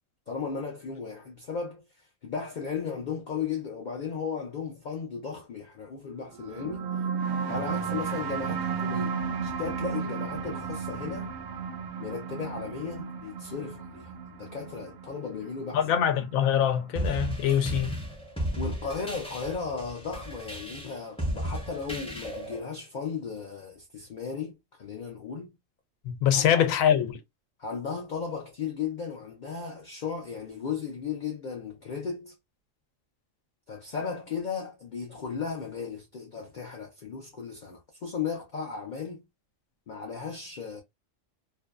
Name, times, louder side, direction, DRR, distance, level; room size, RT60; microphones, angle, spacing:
voice 1, 0.3-6.9 7.5-11.3 12.0-15.8 18.6-25.5 26.3-26.6 27.6-32.3 33.7-39.3 39.9-40.8, left 6 dB, 55° left, 0.5 m, -35 dB
sound 1, 6.4-17.4, right 6 dB, 65° right, 0.7 m, -34 dB
voice 2, 15.7-18.0 26.0-27.2, left 9 dB, 85° left, 1.0 m, -24 dB
sound 2, 17.0-22.6, equal, 5° left, 0.6 m, -34 dB
2.6 x 2.1 x 2.3 m
omnidirectional pair, 1.4 m